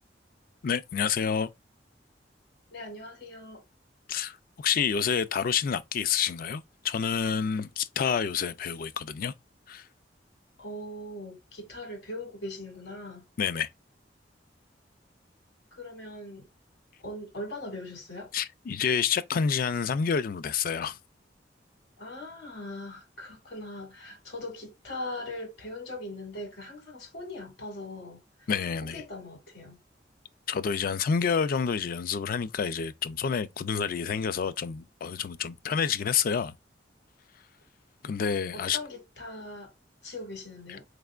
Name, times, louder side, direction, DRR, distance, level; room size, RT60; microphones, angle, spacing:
voice 1, 0.6-1.5 4.1-9.3 9.7-9.9 13.4-13.7 18.3-21.0 28.5-29.0 30.5-36.5 38.0-38.8, left 6 dB, 55° left, 0.4 m, -28 dB
voice 2, 2.7-3.6 10.6-13.2 15.7-16.5 17.0-18.3 22.0-28.5 28.8-29.8 38.5-39.7 40.0-40.8, left 1 dB, 80° left, 2.0 m, -40 dB
4.3 x 3.3 x 2.4 m
head